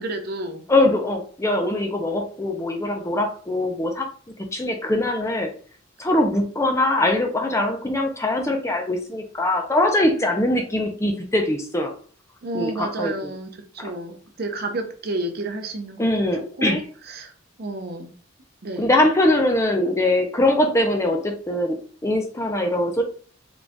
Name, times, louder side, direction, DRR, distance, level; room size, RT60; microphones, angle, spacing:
voice 1, 0.0-0.6 12.4-16.3 16.6-17.3 17.6-18.1 18.6-18.9, right 2 dB, 45° right, 5 dB, 0.6 m, -31 dB
voice 2, 0.7-4.1 4.5-5.5 6.0-11.9 12.5-13.3 13.8-13.9 16.0-16.8 18.8-23.0, left 1 dB, 15° left, 3 dB, 0.4 m, -22 dB
3.9 x 2.3 x 3.4 m, 0.42 s
head